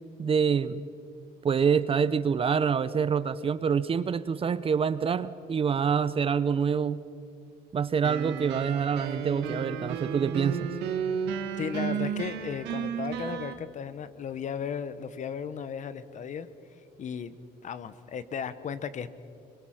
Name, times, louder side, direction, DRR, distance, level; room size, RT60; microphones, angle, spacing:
voice 1, 0.2-0.8 1.4-7.0 7.7-10.7, right 6 dB, 35° right, 15 dB, 0.6 m, -26 dB
sound 1, 8.0-13.5, right 7 dB, 85° right, 1.5 m, -33 dB
voice 2, 11.6-16.5 17.0-17.4 17.6-19.1, left 7 dB, 45° left, 14 dB, 1.0 m, -35 dB
24.5 x 22.5 x 5.9 m, 2.5 s
cardioid pair, 110°, 17 cm